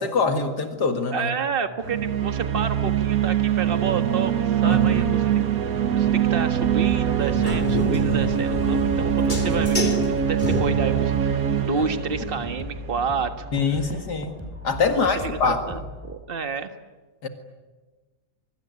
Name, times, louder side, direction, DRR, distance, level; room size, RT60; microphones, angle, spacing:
voice 1, 0.0-1.3 4.6-5.2 11.8-11.9 13.5-15.6 17.2-17.3, left 4 dB, 75° left, 5 dB, 2.6 m, -24 dB
voice 2, 1.1-5.4 5.9-13.5 14.9-16.7, right 5 dB, 35° right, 7 dB, 1.7 m, -30 dB
sound 1, 1.8-13.4, right 9 dB, 60° right, 1.6 m, -23 dB
sound 2, 5.8-16.2, left 1 dB, 10° left, 4.5 m, -38 dB
sound 3, 7.1-11.1, left 1 dB, 25° left, 3.2 m, -29 dB
25.0 x 24.0 x 9.6 m, 1.3 s
omnidirectional pair, 1.7 m